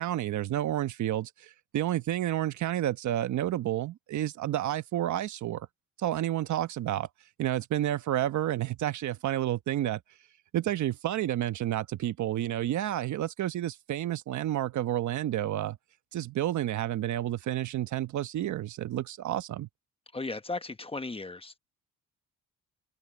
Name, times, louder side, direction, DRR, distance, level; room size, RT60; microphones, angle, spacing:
voice 1, 0.0-5.7 6.0-7.1 7.4-10.0 10.5-15.8 16.1-19.7, right 12 dB, 70° right, 1.2 m, -30 dB
voice 2, 20.1-21.6, left 3 dB, 20° left, 1.1 m, -36 dB
cardioid pair, 90°, 30 cm